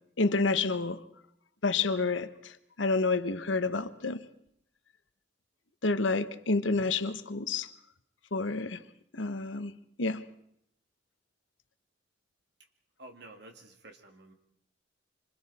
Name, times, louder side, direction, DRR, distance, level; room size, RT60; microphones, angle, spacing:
voice 1, 0.2-1.0 1.6-4.3 5.8-7.7 8.3-8.8 9.1-9.7 10.0-10.3, left 3 dB, 80° left, 1.1 m, -29 dB
voice 2, 13.0-14.3, right 2 dB, 60° right, 2.6 m, -51 dB
27.0 x 26.0 x 4.3 m
head